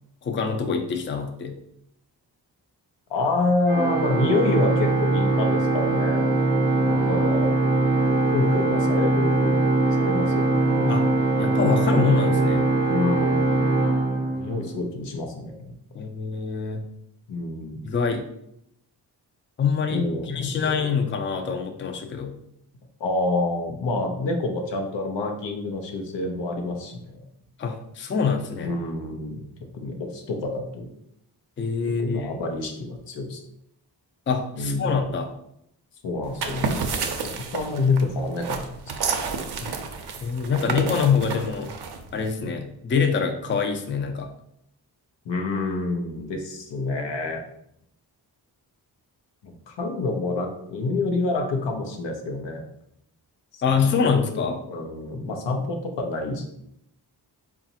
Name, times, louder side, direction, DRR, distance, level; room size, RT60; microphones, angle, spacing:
voice 1, 0.2-1.6 10.9-11.1 11.4-12.7 15.9-16.9 17.8-18.2 19.6-22.3 27.6-28.7 31.6-32.4 34.3-35.3 39.6-39.7 40.2-41.7 42.1-44.3 53.6-54.6, left 6 dB, 30° left, 5 dB, 0.4 m, -25 dB
voice 2, 3.1-6.2 6.8-7.5 8.3-9.6 10.0-11.1 12.9-13.8 14.3-15.7 17.3-17.8 19.9-20.7 23.0-27.2 27.6-27.7 28.6-29.5 29.7-30.9 32.0-33.4 34.5-35.1 36.0-36.7 37.2-38.7 40.5-41.2 45.2-47.4 49.4-52.6 53.5-54.2 54.7-56.6, left 2 dB, 85° left, 3 dB, 0.7 m, -28 dB
Organ, 3.7-14.8, right 2 dB, 25° right, 0.6 m, -22 dB
sound 1, 36.2-42.3, right 5 dB, 65° right, 0.6 m, -30 dB
4.0 x 2.4 x 2.8 m, 0.75 s
cardioid pair, 65°, 42 cm